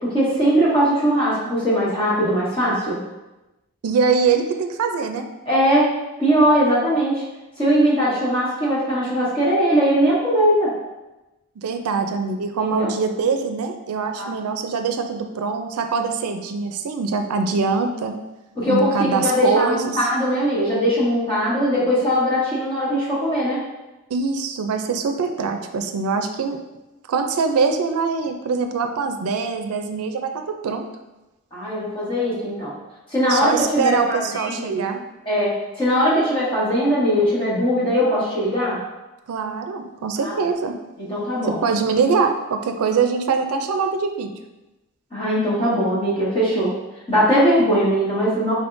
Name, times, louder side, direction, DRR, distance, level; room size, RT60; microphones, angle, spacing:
voice 1, 0.0-3.0 5.4-7.2 7.6-10.7 12.6-12.9 14.1-14.3 18.6-23.6 31.5-32.7 33.1-34.8 35.2-38.8 40.2-40.4 41.0-41.6 45.1-46.7 47.1-48.5, equal, 25° left, -9 dB, 1.5 m, -20 dB
voice 2, 3.8-5.3 11.6-18.1 18.7-20.1 24.1-26.6 27.1-30.9 33.3-35.0 39.3-40.8 41.5-44.3, right 5 dB, 90° right, 6 dB, 0.4 m, -23 dB
5.3 x 3.6 x 2.6 m, 1.0 s
head